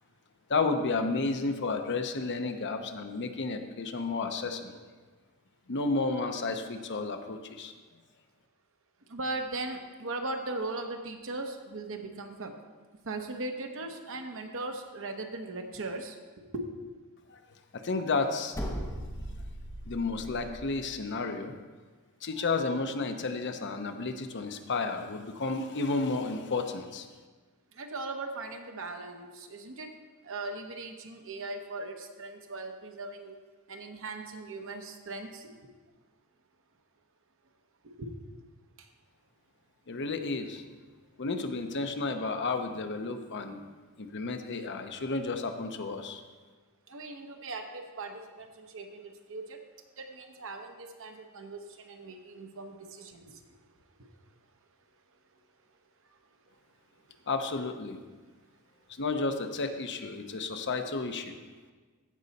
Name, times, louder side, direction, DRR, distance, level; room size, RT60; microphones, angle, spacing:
voice 1, 0.5-4.8 5.7-7.7 17.3-17.4 17.7-18.5 19.9-21.5 22.2-27.1 39.9-40.6 41.2-43.6 44.0-46.2 57.3-58.0 59.0-61.3, left 3 dB, 55° left, 6 dB, 0.7 m, -32 dB
voice 2, 9.1-12.6 13.0-16.1 16.5-16.6 27.7-29.9 30.2-33.4 33.7-35.5 37.8-38.2 38.8-38.9 46.9-49.6 50.0-53.4, right 2 dB, 65° right, 4 dB, 1.0 m, -39 dB
sound 1, 18.5-20.6, equal, 15° left, 1.0 m, -38 dB
15.0 x 5.4 x 4.1 m, 1.4 s
head